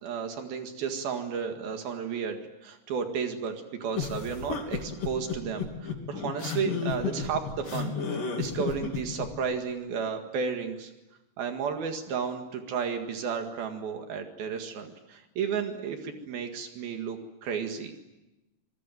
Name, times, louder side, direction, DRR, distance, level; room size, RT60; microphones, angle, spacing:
voice 1, 0.0-10.9 11.4-17.9, right 6 dB, 75° right, 5 dB, 3.8 m, -33 dB
sound 1, 3.9-9.3, left 6 dB, 65° left, 4.8 m, -32 dB
27.0 x 21.0 x 9.2 m, 1.0 s
omnidirectional pair, 4.3 m